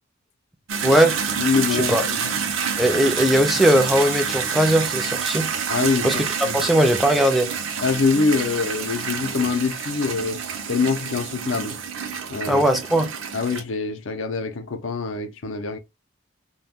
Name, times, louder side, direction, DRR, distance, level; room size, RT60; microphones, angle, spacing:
sound 1, 0.7-13.6, right 6 dB, 70° right, 0.5 m, -28 dB
voice 1, 0.8-1.2 1.9-2.0 2.8-5.5 6.0-6.2 6.5-7.5 12.5-13.1, equal, ahead, 0.3 m, -19 dB
voice 2, 1.4-2.3 5.7-6.1 6.4-6.6 7.8-10.4 10.7-11.8 12.3-12.6 13.3-15.8, left 4 dB, 65° left, 0.5 m, -24 dB
2.2 x 2.2 x 3.4 m
head